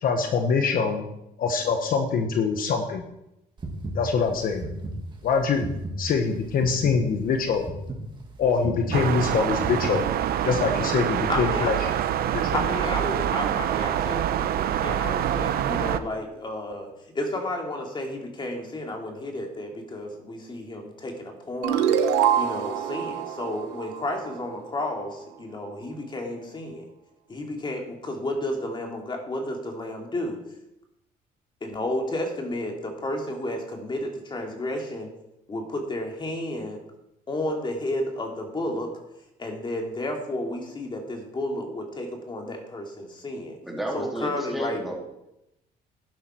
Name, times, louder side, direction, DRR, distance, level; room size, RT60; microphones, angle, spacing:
voice 1, 0.0-1.1 1.4-3.0 3.9-4.7 5.2-5.7 6.0-7.7 8.4-10.0 10.4-11.8 12.3-12.6, left 5 dB, 60° left, 5 dB, 1.3 m, -24 dB
sound 1, 3.6-10.3, right 1 dB, 30° right, 2.3 m, -35 dB
sound 2, 8.9-16.0, right 10 dB, 65° right, 0.8 m, -26 dB
voice 2, 11.3-11.7 12.5-21.8 22.4-26.8 27.3-30.4 31.6-35.1 35.5-36.8 37.3-38.9 39.4-43.6 43.9-44.9, left 1 dB, 25° left, 2 dB, 2.8 m, -32 dB
sound 3, 21.6-24.9, right 9 dB, 90° right, 1.1 m, -25 dB
voice 3, 43.6-44.9, right 1 dB, ahead, -3 dB, 3.6 m, -32 dB
11.5 x 11.0 x 4.6 m, 0.86 s
cardioid pair, 110°, 17 cm